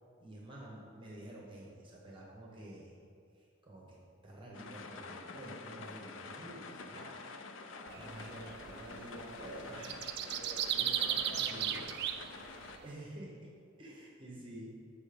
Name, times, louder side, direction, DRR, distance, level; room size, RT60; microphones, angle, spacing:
voice 1, 0.2-2.9 3.3-7.3 7.9-10.0 10.8-10.9 11.2-11.8 12.8-13.5 13.8-14.7, right 1 dB, 25° right, -3 dB, 1.1 m, -49 dB
sound 1, 4.5-12.8, left 4 dB, 75° left, 0.5 m, -48 dB
voice 2, 7.6-8.2 10.2-12.0, equal, 25° left, -6 dB, 1.6 m, -51 dB
sound 2, 7.9-12.8, right 10 dB, 55° right, 0.4 m, -36 dB
7.3 x 5.0 x 5.2 m, 2.4 s
head